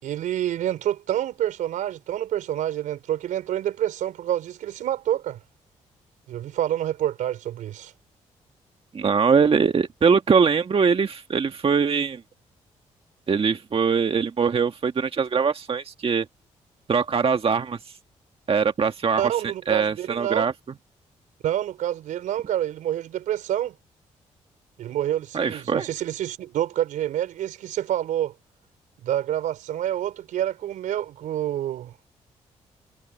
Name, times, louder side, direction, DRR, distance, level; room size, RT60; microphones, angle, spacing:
voice 1, 0.0-5.4 6.3-7.9 19.2-20.5 21.4-23.7 24.8-28.3 29.0-32.1, right 11 dB, 85° right, 4.4 m, -27 dB
voice 2, 8.9-12.2 13.3-16.2 16.9-17.9 18.5-19.3 19.7-20.5 25.3-25.9, right 6 dB, 45° right, 1.7 m, -22 dB
supercardioid pair, 60°, 13 cm